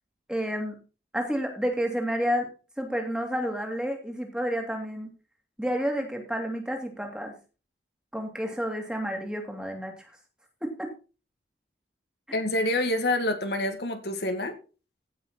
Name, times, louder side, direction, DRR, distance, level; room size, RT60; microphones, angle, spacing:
voice 1, 0.3-0.8 1.1-2.5 2.8-5.1 5.6-7.3 8.1-10.1 10.6-10.9, equal, 5° right, 2 dB, 2.4 m, -30 dB
voice 2, 12.3-14.5, left 1 dB, 70° left, 6 dB, 2.0 m, -27 dB
16.0 x 6.1 x 4.3 m, 0.34 s
head